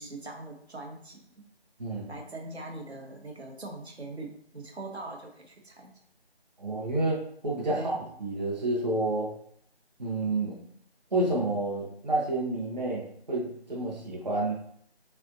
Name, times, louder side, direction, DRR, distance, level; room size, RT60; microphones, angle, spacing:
voice 1, 0.0-1.4 2.1-5.9 7.7-8.0, right 2 dB, 80° right, 2 dB, 1.0 m, -41 dB
voice 2, 6.6-7.9 8.2-9.3 10.0-10.6 11.1-14.5, right 2 dB, 40° right, -3 dB, 0.8 m, -29 dB
3.8 x 3.3 x 2.5 m, 0.64 s
figure-of-eight pair, 170°, 32 cm